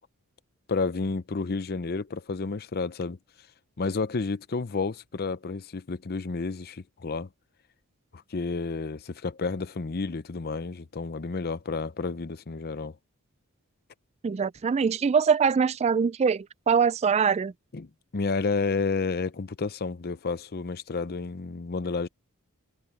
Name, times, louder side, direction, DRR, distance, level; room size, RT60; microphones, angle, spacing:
voice 1, 0.7-3.2 3.8-7.3 8.1-12.9 17.7-22.1, left 4 dB, 45° left, 0.6 m, -31 dB
voice 2, 14.2-17.5, right 6 dB, 30° right, 0.3 m, -23 dB
head